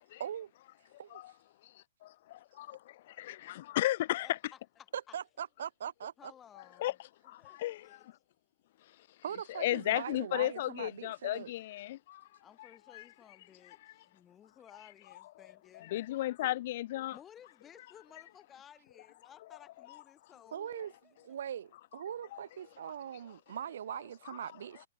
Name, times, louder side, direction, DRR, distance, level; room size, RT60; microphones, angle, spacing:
voice 1, 0.2-0.5 1.0-1.2 4.9-6.3 9.2-11.5 20.5-20.9 21.2-24.9, right 9 dB, 65° right, 0.9 m, -41 dB
voice 2, 2.0-4.3 6.8-6.9 7.2-7.9 9.6-12.3 12.9-13.0 13.8-13.9 15.8-17.2, left 15 dB, 40° left, 0.4 m, -34 dB
voice 3, 4.2-5.2 6.2-7.0 7.2-8.1 12.4-15.9 17.1-20.7 21.0-21.1, left 9 dB, 15° left, 7.0 m, -57 dB
hypercardioid pair, 165°, 0 cm